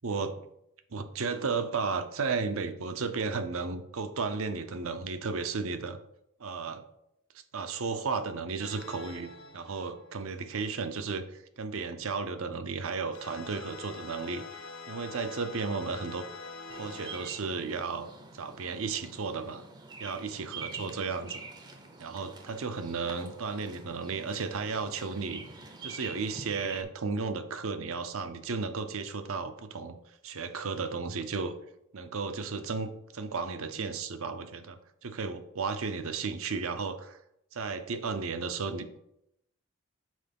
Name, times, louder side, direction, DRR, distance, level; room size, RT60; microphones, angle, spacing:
voice 1, 0.0-0.4 0.9-6.0 6.4-6.8 7.5-14.6 14.9-16.2 16.7-18.1 18.3-19.6 20.0-21.4 22.0-25.4 25.8-30.0 30.2-31.5 31.9-37.2 37.5-39.0, right 4 dB, 75° right, 9 dB, 0.7 m, -34 dB
sound 1, 8.6-10.5 13.1-17.3, left 3 dB, 70° left, 1.1 m, -45 dB
Bird vocalization bird call bird song, 16.7-26.8, right 4 dB, 20° right, 0.6 m, -46 dB
6.3 x 4.6 x 5.2 m, 0.79 s
head